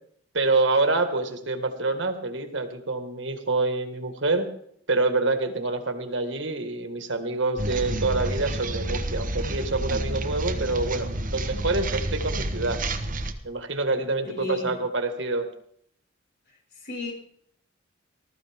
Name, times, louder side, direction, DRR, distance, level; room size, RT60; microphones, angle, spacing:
voice 1, 0.3-4.5 4.9-12.8 13.4-15.5, right 3 dB, 70° right, 6 dB, 1.8 m, -26 dB
sound 1, 7.6-13.3, right 2 dB, 45° right, 1.1 m, -29 dB
voice 2, 14.3-14.7 16.8-17.1, left 1 dB, 55° left, -1 dB, 5.5 m, -33 dB
19.5 x 13.5 x 3.6 m, 0.67 s
head